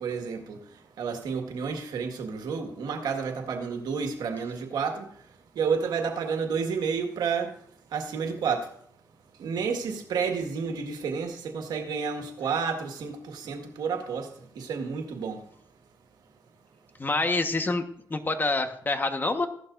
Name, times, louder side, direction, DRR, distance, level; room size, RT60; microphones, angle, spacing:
voice 1, 0.0-0.6 1.0-5.0 5.6-7.5 7.9-8.7 9.4-14.3 14.6-15.4, right 5 dB, 85° right, 4 dB, 1.8 m, -30 dB
voice 2, 17.0-17.8 18.1-19.5, left 2 dB, 30° left, 7 dB, 1.3 m, -26 dB
15.5 x 11.5 x 2.6 m, 0.65 s
cardioid pair, 80°, 7 cm